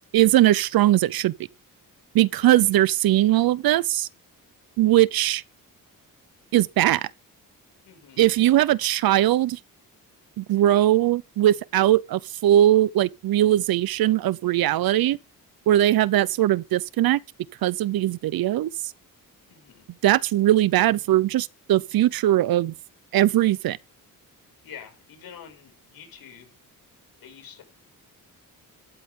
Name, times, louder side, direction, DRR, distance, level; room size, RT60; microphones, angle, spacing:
voice 1, 0.1-1.3 2.1-4.1 4.8-5.4 6.5-7.1 8.2-9.6 10.4-15.2 15.7-17.2 17.6-18.7 20.0-22.7 23.1-23.8, right 13 dB, 85° right, 0.8 m, -20 dB
voice 2, 2.4-2.7 7.8-8.3 19.5-19.8 24.6-26.6 27.2-27.6, left 8 dB, 80° left, 6.7 m, -46 dB
15.0 x 13.0 x 3.8 m
wide cardioid pair, 170°, 35 cm